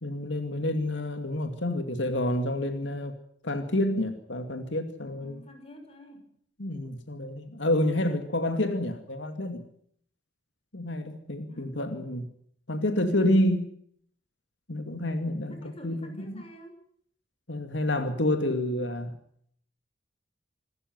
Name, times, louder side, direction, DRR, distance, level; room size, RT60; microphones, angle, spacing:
voice 1, 0.0-3.1 3.4-5.4 6.6-9.6 10.7-12.3 12.7-13.7 14.7-16.4 17.5-19.2, left 1 dB, 90° left, 7 dB, 2.4 m, -28 dB
voice 2, 5.2-6.3 11.5-11.8 15.5-16.8, equal, 35° left, 5 dB, 6.2 m, -48 dB
26.5 x 13.5 x 9.5 m, 0.65 s
head